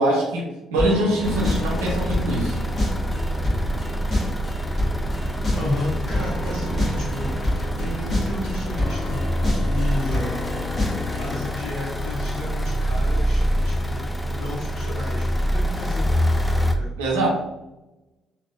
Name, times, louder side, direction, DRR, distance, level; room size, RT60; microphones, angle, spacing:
voice 1, 0.0-2.6 17.0-17.3, right 1 dB, 75° right, -2 dB, 0.6 m, -23 dB
sound 1, 0.8-11.4, left 1 dB, 40° left, 1.2 m, -28 dB
sound 2, 1.2-16.8, equal, 15° left, 0.4 m, -25 dB
voice 2, 5.5-9.2 9.5-10.4 10.7-16.0 16.7-16.9, left 1 dB, 65° left, -7 dB, 0.8 m, -33 dB
3.5 x 2.3 x 2.3 m, 0.97 s
figure-of-eight pair, 45°, 0 cm